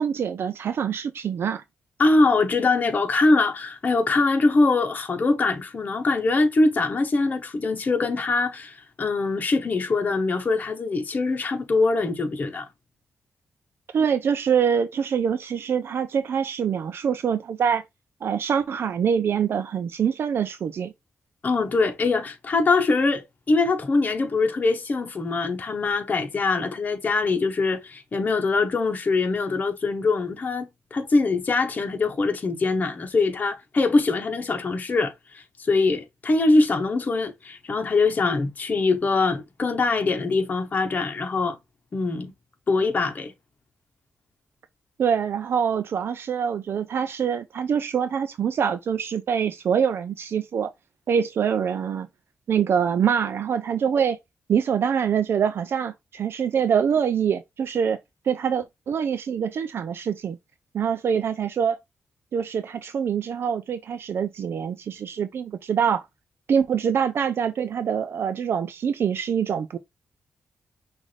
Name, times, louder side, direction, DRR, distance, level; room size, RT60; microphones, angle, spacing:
voice 1, 0.0-1.6 13.9-17.8 18.2-20.9 45.0-50.7 51.1-52.1 52.5-54.2 54.5-58.0 58.2-60.4 60.7-61.8 62.3-66.1 66.5-69.8, right 7 dB, 60° right, 0.4 m, -24 dB
voice 2, 2.0-12.7 21.4-41.6 41.9-42.3 42.7-43.3, left 3 dB, 40° left, 0.9 m, -23 dB
6.2 x 2.6 x 3.2 m
wide cardioid pair, 120°, 4 cm